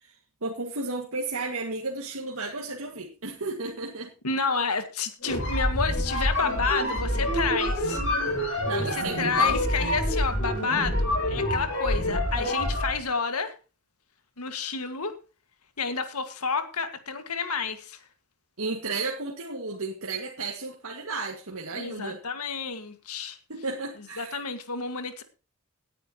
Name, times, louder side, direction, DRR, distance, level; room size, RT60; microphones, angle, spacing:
voice 1, 0.4-4.1 8.6-9.6 18.6-22.2 23.5-24.4, right 3 dB, 65° right, -1 dB, 2.0 m, -33 dB
voice 2, 4.2-8.0 8.8-13.5 14.4-15.2 15.8-18.0 21.7-23.4 24.0-25.2, left 5 dB, 85° left, 8 dB, 1.9 m, -30 dB
sound 1, 5.2-13.0, left 1 dB, 60° left, 6.7 m, -27 dB
18.5 x 10.0 x 3.0 m, 0.32 s
head